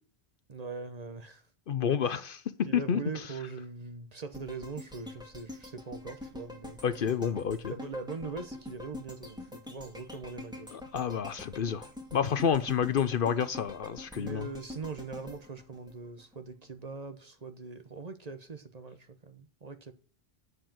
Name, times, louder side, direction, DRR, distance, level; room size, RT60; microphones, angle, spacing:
voice 1, 0.5-1.5 2.0-2.3 2.6-6.8 7.7-10.9 14.1-19.9, right 4 dB, 40° right, 1.0 m, -41 dB
voice 2, 1.7-3.0 6.8-7.7 10.9-11.8 12.1-14.4, left 8 dB, 60° left, 0.8 m, -29 dB
sound 1, 4.3-16.5 16.9-17.0, left 2 dB, 5° right, 2.0 m, -46 dB
13.5 x 4.8 x 7.6 m
omnidirectional pair, 1.1 m